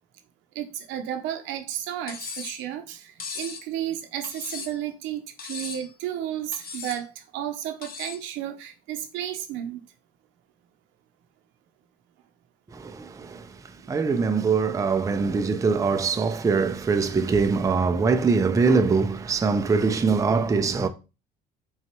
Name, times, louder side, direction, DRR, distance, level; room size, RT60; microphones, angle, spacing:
voice 1, 0.5-9.8, right 11 dB, 70° right, 0.7 m, -33 dB
Cutlery silverware, 2.1-2.6 3.2-3.6 4.2-4.9 5.4-5.9 6.5-7.0 7.8-8.2, left 5 dB, 45° left, 0.9 m, -37 dB
voice 2, 12.7-20.9, right 4 dB, 15° right, 0.4 m, -23 dB
4.9 x 2.4 x 3.0 m
hypercardioid pair, 70°, 20 cm